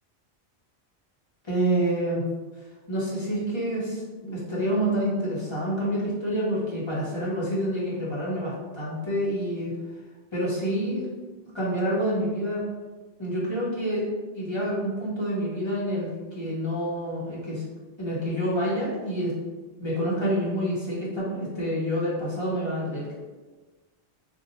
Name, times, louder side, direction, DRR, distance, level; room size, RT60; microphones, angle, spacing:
voice 1, 1.4-2.2 2.9-9.7 10.3-11.1 11.5-12.6 13.2-14.1 14.3-17.6 18.0-19.3 19.8-23.1, equal, 25° left, -7 dB, 0.9 m, -28 dB
2.7 x 2.5 x 4.0 m, 1.3 s
omnidirectional pair, 1.1 m